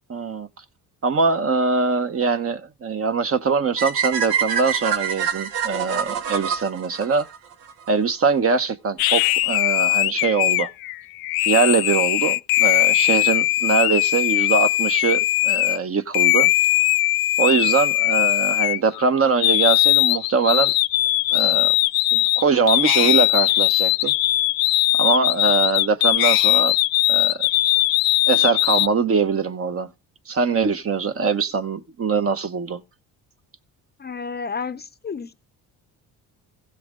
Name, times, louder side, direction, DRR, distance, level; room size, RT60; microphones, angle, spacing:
voice 1, 0.1-0.5 1.0-7.3 7.9-10.7 11.5-16.5 17.4-20.7 21.3-21.7 22.1-24.1 24.9-26.7 27.1-27.4 28.3-29.9 30.3-32.8, right 5 dB, 35° right, 0.9 m, -22 dB
sound 1, 3.8-7.9, right 7 dB, 80° right, 1.5 m, -26 dB
sound 2, 9.0-15.8 16.1-19.1 19.4-28.9, left 18 dB, 65° left, 0.5 m, -19 dB
voice 2, 34.0-35.3, left 5 dB, 25° left, 0.7 m, -31 dB
15.5 x 5.9 x 3.7 m
supercardioid pair, 85°, 38 cm